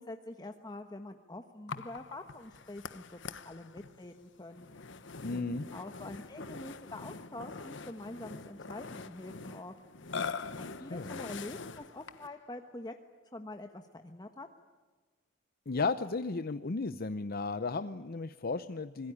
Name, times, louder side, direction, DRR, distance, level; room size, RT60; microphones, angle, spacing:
voice 1, 0.0-4.7 5.3-9.7 10.5-12.9 13.3-14.5, left 2 dB, 20° left, 6 dB, 1.2 m, -45 dB
Burping eructation, 1.7-12.4, left 4 dB, 70° left, 1.2 m, -43 dB
voice 2, 5.2-5.7 10.9-11.2 15.7-19.1, left 3 dB, 50° left, 12 dB, 0.7 m, -34 dB
25.5 x 21.5 x 9.9 m, 1.4 s
head